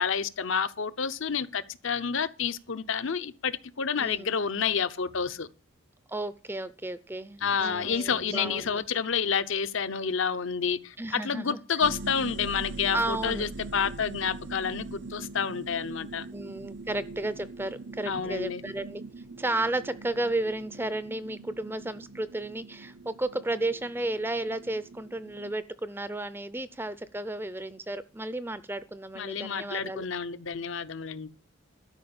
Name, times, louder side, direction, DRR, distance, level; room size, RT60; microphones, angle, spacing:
voice 1, 0.0-5.5 7.4-16.2 18.1-18.6 29.2-31.3, left 6 dB, 65° left, 0.8 m, -29 dB
voice 2, 4.0-4.4 6.1-8.9 11.0-11.6 12.9-13.5 16.3-19.0 19.4-30.0, right 2 dB, 10° right, 0.5 m, -33 dB
sound 1, 5.1-5.5 7.4-8.8, right 4 dB, 80° right, 1.6 m, -48 dB
sound 2, 11.8-25.6, right 3 dB, 50° right, 0.7 m, -42 dB
12.5 x 5.3 x 8.7 m
head